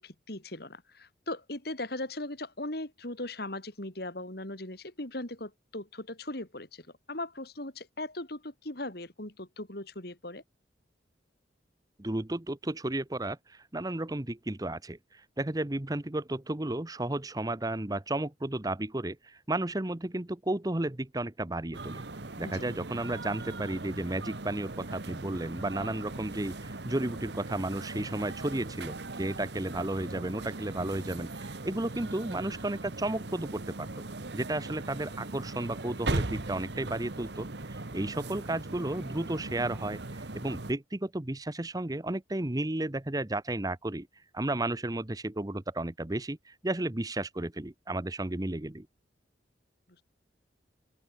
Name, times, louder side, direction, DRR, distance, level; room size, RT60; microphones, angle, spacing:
voice 1, 0.0-10.4 22.4-22.6, left 2 dB, 55° left, 3.3 m, -39 dB
voice 2, 12.0-22.0 22.4-33.9 34.3-44.1 44.3-48.9, right 1 dB, 20° right, 0.9 m, -33 dB
sound 1, 21.7-40.7, right 2 dB, 65° right, 1.4 m, -39 dB
head